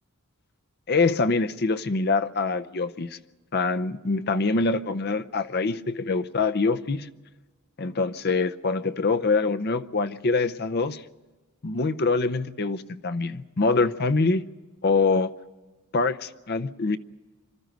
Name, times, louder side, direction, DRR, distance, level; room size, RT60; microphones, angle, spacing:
voice 1, 0.9-3.2 3.5-7.1 7.8-11.0 11.6-14.4 14.8-15.3 15.9-17.0, left 3 dB, 50° left, 11 dB, 0.7 m, -24 dB
25.5 x 13.0 x 9.2 m, 1.3 s
head